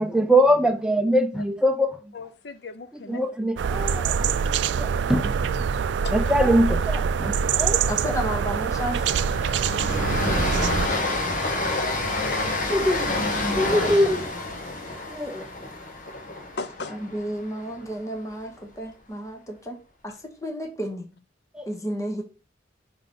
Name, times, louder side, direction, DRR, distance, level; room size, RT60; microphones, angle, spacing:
voice 1, 0.0-2.0 3.1-4.3 4.8-5.4 6.1-7.8 12.0-12.2 12.7-13.1 13.5-14.2 15.1-15.4 21.6-21.7, equal, 5° right, 0.6 m, -23 dB
voice 2, 2.1-3.2 6.0-6.1 12.0-13.9 16.5-16.9, left 3 dB, 60° left, 0.7 m, -37 dB
sound 1, 3.6-10.9, right 6 dB, 70° right, 0.3 m, -24 dB
Train, 6.7-7.0 7.2-7.4 7.8-17.9, left 2 dB, 45° left, 1.2 m, -29 dB
voice 3, 7.9-9.2 10.9-11.1 13.8-13.9 16.9-19.8 20.0-20.1 20.4-21.0 21.7-22.2, equal, 15° left, 1.1 m, -32 dB
5.5 x 3.9 x 5.3 m
head